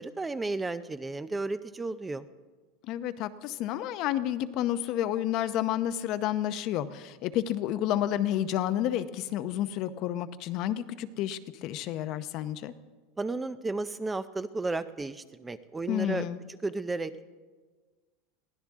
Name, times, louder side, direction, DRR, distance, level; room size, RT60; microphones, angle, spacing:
voice 1, 0.0-2.3 13.2-16.3 16.6-17.2, right 3 dB, 10° right, 12 dB, 0.5 m, -33 dB
voice 2, 2.8-12.7 15.9-16.4, left 12 dB, 50° left, 12 dB, 0.7 m, -30 dB
22.0 x 16.0 x 3.6 m, 1.4 s
supercardioid pair, 140°, 0 cm